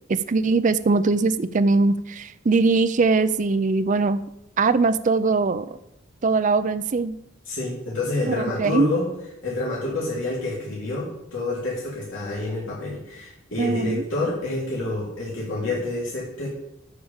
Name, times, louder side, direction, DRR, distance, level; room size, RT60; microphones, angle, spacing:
voice 1, 0.1-4.2 4.6-5.7 6.2-7.2 8.3-8.9 13.6-14.0, right 3 dB, 40° right, 12 dB, 0.4 m, -21 dB
voice 2, 7.5-9.1 9.4-16.5, left 2 dB, 70° left, -6 dB, 2.9 m, -28 dB
11.5 x 4.9 x 7.1 m, 0.85 s
head